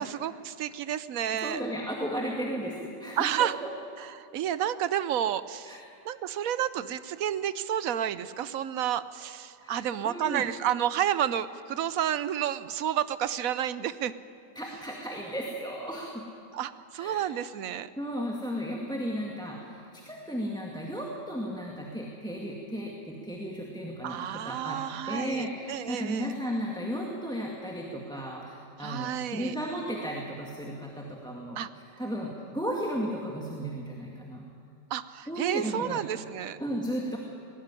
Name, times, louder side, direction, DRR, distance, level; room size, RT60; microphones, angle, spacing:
voice 1, 0.0-1.6 3.2-3.6 4.0-5.8 6.0-14.1 16.5-17.9 24.0-26.3 28.8-29.5 31.6-31.7 34.9-36.6, right 10 dB, 65° right, 15 dB, 1.0 m, -30 dB
voice 2, 1.4-3.7 5.7-5.8 9.6-10.4 14.6-16.3 17.0-17.3 18.0-24.8 25.1-34.5 35.3-36.0 36.6-37.2, equal, ahead, -1 dB, 1.9 m, -35 dB
19.5 x 17.5 x 9.7 m, 2.4 s
omnidirectional pair, 1.8 m